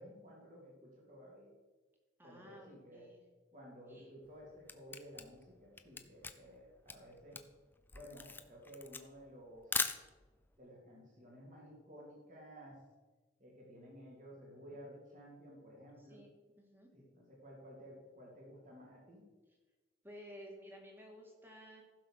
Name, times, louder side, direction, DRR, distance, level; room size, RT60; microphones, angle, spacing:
voice 1, 0.0-1.5 2.2-3.0 3.5-7.4 7.9-9.9 10.6-12.8 13.4-16.2 16.9-19.2, equal, 40° right, -3 dB, 3.0 m, -54 dB
voice 2, 2.2-3.2 3.9-4.1 16.1-16.3 16.6-16.9 20.0-21.8, equal, 10° right, 1 dB, 2.1 m, -54 dB
Camera, 4.2-10.5, left 4 dB, 10° left, 0.5 m, -41 dB
15.0 x 5.9 x 6.5 m, 1.3 s
head